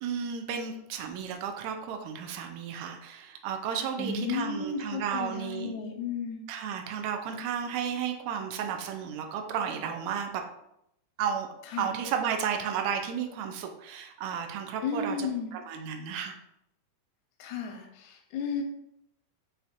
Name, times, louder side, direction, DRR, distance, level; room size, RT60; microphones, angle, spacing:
voice 1, 0.0-5.7 6.5-10.4 11.2-11.5 11.8-16.4, right 7 dB, 85° right, 4 dB, 1.6 m, -33 dB
voice 2, 4.0-6.4 11.7-11.9 14.8-15.5 17.4-18.6, left 5 dB, 80° left, 2 dB, 1.8 m, -33 dB
6.9 x 2.8 x 2.5 m, 0.79 s
omnidirectional pair, 3.7 m